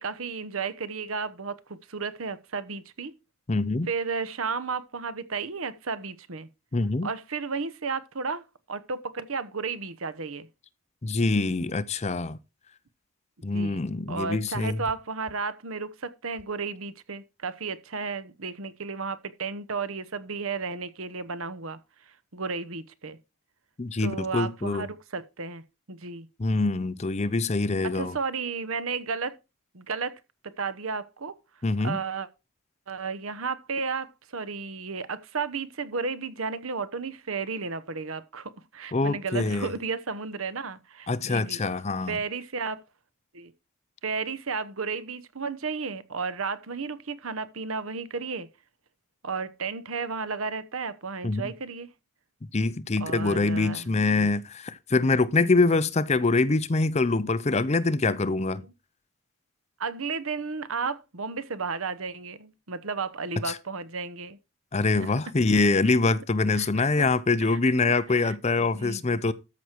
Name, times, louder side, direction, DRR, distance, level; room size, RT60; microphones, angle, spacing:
voice 1, 0.0-3.1 3.9-6.5 7.0-10.5 13.5-13.8 14.1-21.8 22.1-23.2 24.0-25.6 25.9-26.3 27.8-29.4 29.7-30.1 30.4-31.3 31.8-32.3 32.9-41.6 42.1-42.8 43.3-43.5 44.0-48.5 49.2-51.9 53.0-54.3 58.6-58.7 59.8-64.4 65.0-65.7 66.0-66.1 66.5-67.1 67.5-67.6 67.9-69.3, right 4 dB, 75° right, 1.0 m, -33 dB
voice 2, 3.5-3.9 6.7-7.1 11.0-12.4 13.4-14.8 23.8-24.9 26.4-28.2 31.6-32.0 38.9-39.7 41.1-42.2 51.2-51.4 52.5-58.6 63.4-63.6 64.7-69.3, left 3 dB, 30° left, 0.6 m, -24 dB
13.5 x 6.3 x 4.5 m
head